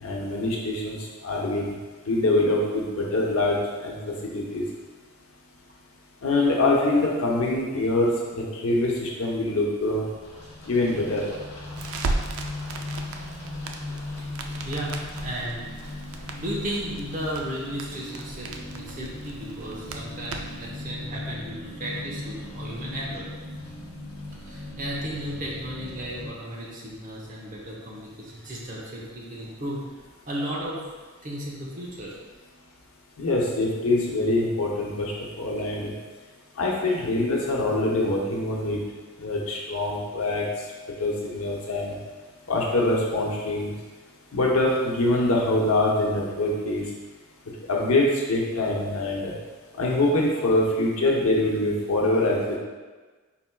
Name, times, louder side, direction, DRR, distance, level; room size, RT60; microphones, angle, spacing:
voice 1, 0.0-1.0 1.2-1.7 2.1-4.6 6.2-10.0 10.7-11.2 33.2-35.1 35.4-35.9 36.6-38.8 39.2-40.4 41.0-41.9 42.5-43.7 44.3-46.8 47.7-49.3 49.8-52.6, left 2 dB, 90° left, -2 dB, 0.8 m, -24 dB
sound 1, 9.8-26.3, left 2 dB, 35° left, 1.3 m, -38 dB
Crackle, 11.7-20.7, right 3 dB, 85° right, 0.4 m, -36 dB
voice 2, 14.6-14.9 15.2-15.6 16.3-23.2 24.4-29.8 30.3-30.8 31.2-32.2, equal, 40° right, -4 dB, 0.9 m, -34 dB
4.4 x 4.0 x 2.2 m, 1.4 s
head